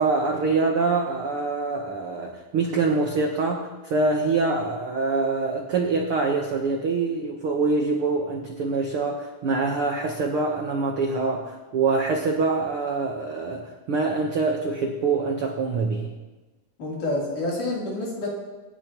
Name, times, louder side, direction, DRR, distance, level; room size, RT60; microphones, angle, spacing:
voice 1, 0.0-16.1, right 3 dB, 75° right, 1 dB, 1.2 m, -25 dB
voice 2, 16.8-18.3, left 2 dB, 60° left, -5 dB, 4.9 m, -28 dB
25.0 x 10.5 x 3.0 m, 1.2 s
omnidirectional pair, 4.2 m